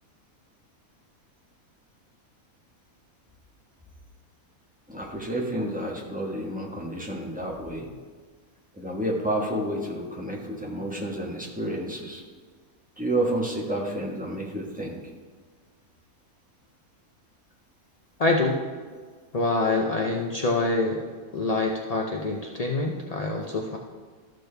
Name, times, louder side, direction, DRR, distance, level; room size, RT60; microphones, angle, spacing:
voice 1, 4.9-7.9 8.8-12.2 13.0-15.0, right 1 dB, 5° right, -2 dB, 1.2 m, -30 dB
voice 2, 18.2-18.6 19.3-21.0 21.3-23.8, left 2 dB, 55° left, 0 dB, 0.4 m, -25 dB
13.0 x 6.3 x 3.4 m, 1.5 s
omnidirectional pair, 1.6 m